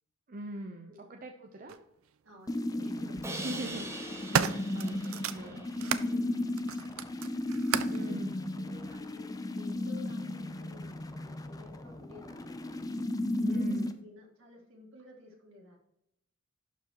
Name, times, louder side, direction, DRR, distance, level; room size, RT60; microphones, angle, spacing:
voice 1, 0.3-1.8 3.3-3.9 4.3-5.7 7.9-8.4 13.4-13.9, right 1 dB, 40° right, 3 dB, 0.7 m, -42 dB
sound 1, 1.7-1.8 2.9-3.3 3.8-6.1 6.5-8.0 8.9-9.0, right 8 dB, 80° right, 0.5 m, -33 dB
voice 2, 2.2-3.5 4.6-5.5 5.8-7.3 7.9-12.8 13.4-15.8, left 2 dB, 65° right, -1 dB, 2.3 m, -54 dB
sound 2, 2.5-13.9, left 1 dB, 15° left, 0.5 m, -35 dB
Crash cymbal, 3.2-6.3, right 2 dB, 15° right, 1.0 m, -43 dB
11.5 x 4.8 x 3.0 m, 0.81 s
head